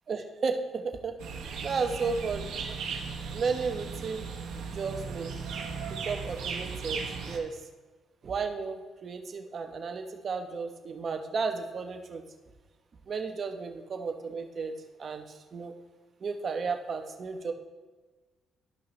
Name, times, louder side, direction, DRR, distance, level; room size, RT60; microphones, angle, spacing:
voice 1, 0.1-1.1 1.6-2.4 3.3-4.2 4.6-5.3 5.9-7.6 8.2-12.2 13.1-14.7 15.0-15.7 16.2-17.5, right 5 dB, 50° right, 5 dB, 0.9 m, -33 dB
sound 1, 1.2-7.4, right 5 dB, 85° right, 1.1 m, -37 dB
12.5 x 5.5 x 3.2 m, 1.3 s
cardioid pair, 90°, 0 cm